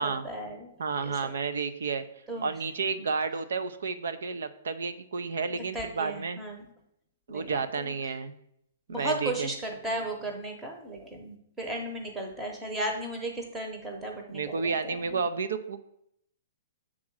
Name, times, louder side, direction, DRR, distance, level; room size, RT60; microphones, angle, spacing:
voice 1, 0.0-0.7 1.0-1.2 2.3-2.5 5.5-6.7 7.3-8.2 8.9-15.2, right 1 dB, 5° right, 1 dB, 0.8 m, -35 dB
voice 2, 0.8-2.0 2.4-6.4 7.3-8.3 8.9-9.5 14.3-15.8, right 5 dB, 80° right, 11 dB, 0.6 m, -31 dB
7.2 x 3.7 x 6.2 m, 0.74 s
hypercardioid pair, 175°, 0 cm